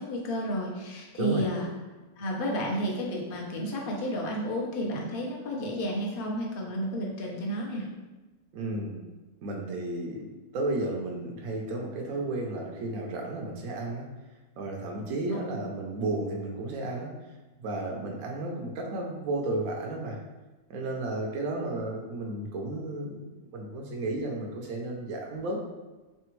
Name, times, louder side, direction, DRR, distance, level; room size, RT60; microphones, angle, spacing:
voice 1, 0.0-1.7 2.2-7.9 15.3-15.4, equal, 45° left, -2 dB, 0.8 m, -31 dB
voice 2, 8.5-9.0 9.4-10.2 10.5-14.1 14.6-17.2 17.6-20.2 20.7-23.2 23.5-25.7, right 2 dB, 70° right, 0 dB, 1.0 m, -33 dB
3.7 x 3.3 x 3.1 m, 1.2 s
omnidirectional pair, 1.6 m